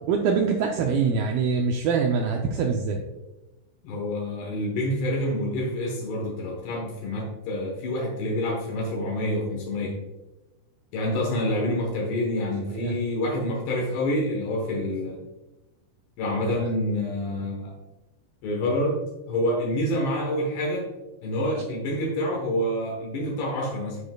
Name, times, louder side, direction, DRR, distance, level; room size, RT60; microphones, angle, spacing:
voice 1, 0.1-3.0 12.7-12.9, right 5 dB, 85° right, 1 dB, 2.1 m, -24 dB
voice 2, 3.8-10.0 10.9-15.2 16.2-17.7 18.4-20.9 21.2-24.0, left 1 dB, 75° left, -1 dB, 3.3 m, -27 dB
12.5 x 5.2 x 2.3 m, 1.0 s
omnidirectional pair, 4.9 m